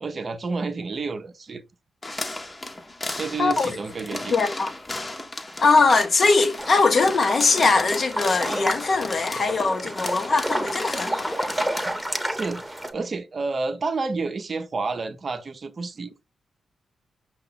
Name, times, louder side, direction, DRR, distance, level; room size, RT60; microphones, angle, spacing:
voice 1, 0.0-1.6 3.2-4.3 12.3-16.2, right 4 dB, 50° right, 0.6 m, -30 dB
sound 1, 2.0-12.0, left 2 dB, 25° left, 0.9 m, -35 dB
voice 2, 4.3-4.7 5.6-11.3, left 4 dB, 55° left, 0.9 m, -21 dB
sound 2, 6.6-12.9, right 1 dB, 5° right, 1.0 m, -30 dB
5.5 x 2.4 x 3.8 m
hypercardioid pair, 40°, 0 cm